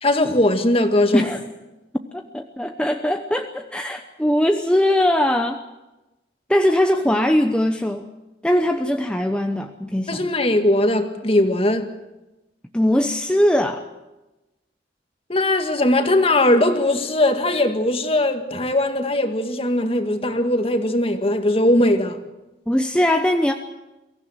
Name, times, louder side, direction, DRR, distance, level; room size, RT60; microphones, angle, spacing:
voice 1, 0.0-1.3 10.1-11.9 15.3-22.2, left 1 dB, 30° left, 1.9 m, -19 dB
voice 2, 2.1-5.6 6.5-8.1 8.4-10.3 12.7-13.8 22.7-23.5, left 1 dB, 5° left, 0.9 m, -20 dB
23.5 x 15.5 x 9.0 m
head